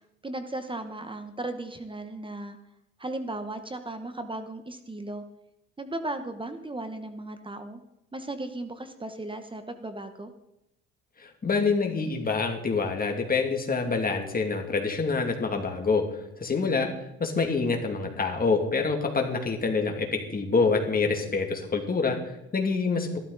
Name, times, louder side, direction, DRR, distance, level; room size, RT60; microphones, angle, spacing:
voice 1, 0.2-2.6 3.0-5.2 5.8-7.8 8.1-10.3, right 2 dB, 15° right, 9 dB, 1.2 m, -36 dB
voice 2, 11.2-16.0 16.4-16.9 17.2-23.2, left 4 dB, 30° left, 3 dB, 2.6 m, -26 dB
14.5 x 12.5 x 4.1 m, 0.88 s
cardioid pair, 95°, 29 cm